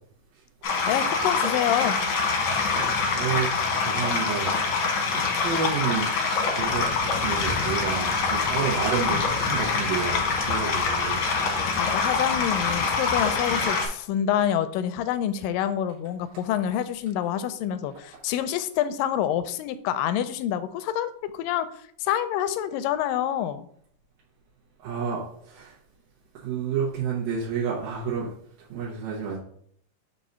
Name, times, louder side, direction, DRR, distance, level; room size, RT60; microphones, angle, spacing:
sound 1, 0.6-13.9, left 4 dB, 70° left, 1.2 m, -25 dB
voice 1, 0.9-2.0 11.8-21.7 22.0-23.7, left 10 dB, 85° left, 11 dB, 2.2 m, -27 dB
voice 2, 2.7-3.5 3.8-4.5 5.1-6.1 6.4-11.2 11.6-11.8 24.8-25.7 26.3-28.3 28.6-29.4, right 6 dB, 90° right, -6 dB, 2.9 m, -30 dB
sound 2, 6.6-13.6, left 3 dB, 35° left, 0.4 m, -38 dB
6.5 x 2.7 x 5.5 m, 0.65 s
omnidirectional pair, 3.8 m